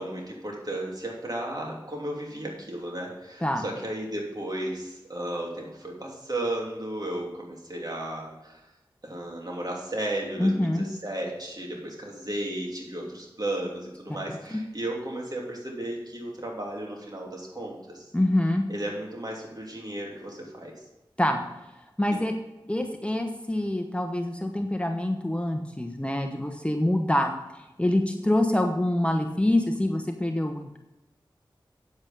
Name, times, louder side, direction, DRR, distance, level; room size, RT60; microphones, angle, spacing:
voice 1, 0.0-8.6 9.0-18.1 18.7-20.7 22.1-22.2, right 1 dB, 45° right, -1 dB, 3.1 m, -34 dB
voice 2, 10.4-10.9 14.5-14.6 18.1-18.6 21.2-21.4 22.0-22.3 22.7-27.3 27.8-30.8, left 1 dB, 15° left, 4 dB, 1.0 m, -25 dB
8.8 x 8.0 x 5.3 m, 0.99 s
cardioid pair, 40°, 9 cm